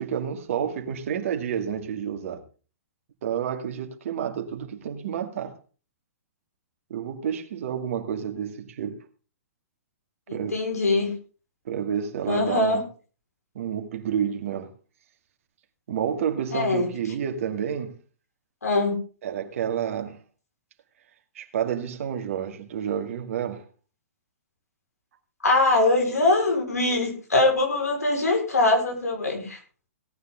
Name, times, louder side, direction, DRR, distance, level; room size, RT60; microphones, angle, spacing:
voice 1, 0.0-2.4 3.2-5.5 6.9-9.0 10.3-10.6 11.7-12.8 13.5-14.7 15.9-17.9 19.2-20.2 21.3-23.6, right 8 dB, 60° right, 2.3 m, -29 dB
voice 2, 10.3-11.1 12.3-12.8 16.5-16.9 18.6-19.0 25.4-29.6, left 2 dB, 85° left, 5.2 m, -22 dB
18.0 x 9.5 x 3.9 m
hypercardioid pair, 120°, 8 cm